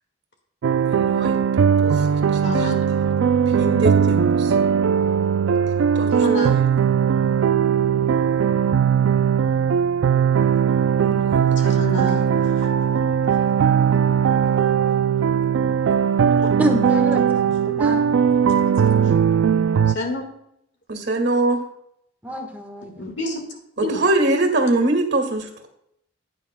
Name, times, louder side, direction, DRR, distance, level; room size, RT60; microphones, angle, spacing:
sound 1, 0.6-20.0, right 7 dB, 75° right, 0.3 m, -19 dB
voice 1, 0.9-1.4 1.8-1.9 3.5-4.5 6.0-6.1 11.0-11.5 20.9-21.6 23.9-25.7, right 2 dB, 55° right, 5 dB, 2.0 m, -22 dB
voice 2, 2.4-2.8 6.1-6.6 11.6-12.3 12.6-12.7 14.4-14.5 16.4-16.5 19.9-20.2 23.0-24.0, left 1 dB, 60° left, 3 dB, 1.7 m, -28 dB
voice 3, 16.6-18.0 22.2-22.9, right 1 dB, 10° right, 2 dB, 1.3 m, -26 dB
16.5 x 9.5 x 2.2 m, 0.76 s
head